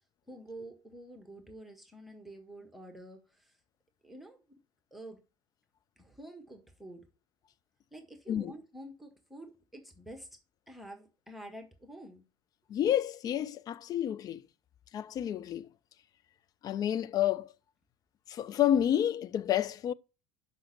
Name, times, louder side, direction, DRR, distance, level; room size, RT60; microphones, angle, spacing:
voice 1, 0.3-3.6 4.0-4.4 4.9-5.2 6.0-7.0 7.9-10.3 10.7-12.2, right 1 dB, ahead, 1.5 m, -48 dB
voice 2, 12.7-14.4 14.9-15.7 16.6-17.5 18.3-19.9, left 11 dB, 30° left, 0.4 m, -29 dB
6.3 x 5.3 x 5.9 m
figure-of-eight pair, 70°, 12 cm